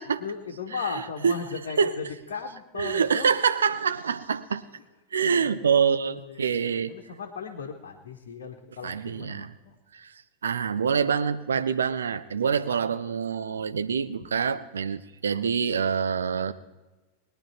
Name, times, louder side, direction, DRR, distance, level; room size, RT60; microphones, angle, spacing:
voice 1, 0.2-3.3 5.4-6.4 6.9-9.7, left 6 dB, 60° left, 1 dB, 1.2 m, -37 dB
voice 2, 0.8-1.3 1.8-2.0 2.7-4.6 5.1-7.2 8.8-9.5 9.9-10.1 10.4-16.5, right 6 dB, 70° right, 11 dB, 0.7 m, -26 dB
20.5 x 9.8 x 4.2 m, 1.2 s
figure-of-eight pair, 90°, 0 cm